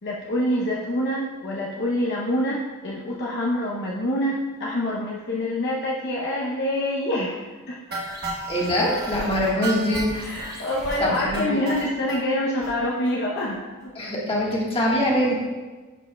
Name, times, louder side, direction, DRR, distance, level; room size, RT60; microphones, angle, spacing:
voice 1, 0.0-7.8 10.1-13.9, left 1 dB, 50° left, -3 dB, 0.7 m, -26 dB
sound 1, 7.9-12.2 12.6-12.7 13.1-13.2 13.4-13.5 13.8-13.9, right 2 dB, 50° right, 1.1 m, -33 dB
voice 2, 8.5-10.0 11.0-11.6 13.9-15.4, left 1 dB, 25° left, -4 dB, 1.5 m, -23 dB
10.5 x 5.3 x 2.2 m, 1.3 s
head